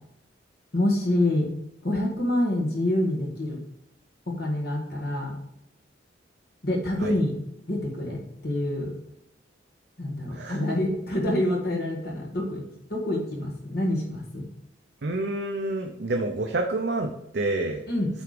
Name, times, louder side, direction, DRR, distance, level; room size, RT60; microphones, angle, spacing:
voice 1, 0.7-1.5 1.8-3.6 4.4-5.3 6.6-7.3 7.7-8.9 10.0-12.6 12.9-14.5 17.9-18.1, left 1 dB, 55° left, 0 dB, 1.6 m, -26 dB
voice 2, 10.3-10.6 15.0-17.8, right 2 dB, 60° right, 3 dB, 0.6 m, -28 dB
8.3 x 3.4 x 5.0 m, 0.80 s
head